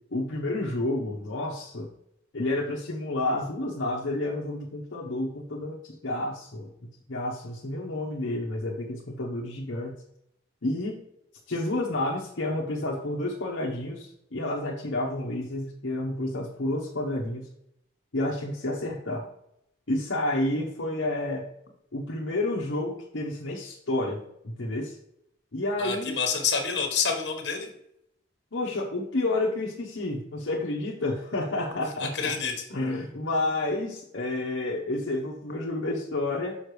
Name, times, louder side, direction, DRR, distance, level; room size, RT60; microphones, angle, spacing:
voice 1, 0.1-1.9 2.3-6.7 7.1-9.9 10.6-11.0 11.5-17.5 18.1-19.3 19.9-21.4 21.9-25.0 25.5-26.2 28.5-32.1 32.7-36.6, left 2 dB, 80° left, -3 dB, 1.0 m, -30 dB
voice 2, 25.8-27.7 32.0-32.6, left 5 dB, 60° left, 3 dB, 1.4 m, -28 dB
6.5 x 5.6 x 3.2 m, 0.77 s
head